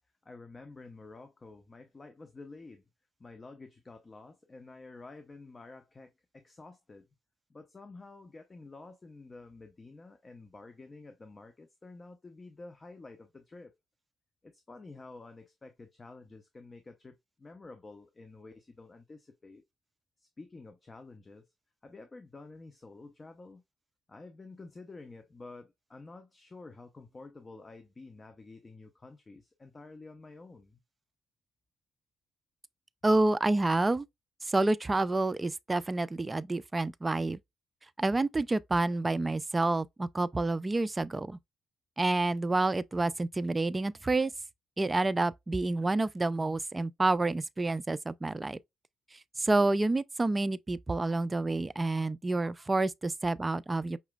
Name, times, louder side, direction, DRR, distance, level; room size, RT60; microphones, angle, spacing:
voice 1, 0.2-2.8 3.2-7.1 7.5-13.7 14.4-19.6 20.2-21.5 21.8-23.6 24.1-30.8, left 3 dB, 30° left, 0.7 m, -50 dB
voice 2, 33.0-34.1 34.4-37.4 38.0-41.4 42.0-44.3 44.8-48.6 49.1-54.0, right 2 dB, 20° right, 0.4 m, -28 dB
5.7 x 3.0 x 2.2 m
cardioid pair, 90°, 0 cm